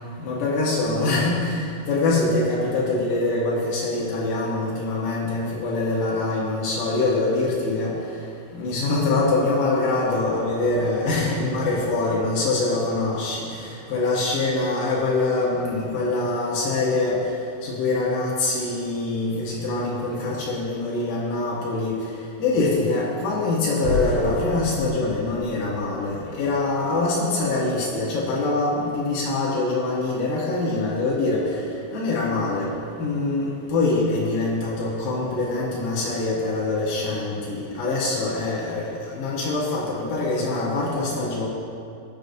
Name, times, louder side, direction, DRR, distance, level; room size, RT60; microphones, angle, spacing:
voice 1, 0.2-7.9 8.5-17.2 17.6-21.9 22.4-31.6 31.9-41.5, left 2 dB, 75° left, -6 dB, 2.0 m, -24 dB
Rumbling Elevator, 23.8-26.8, left 1 dB, 80° right, 3.7 m, -31 dB
18.0 x 6.5 x 2.6 m, 2.4 s
omnidirectional pair, 5.5 m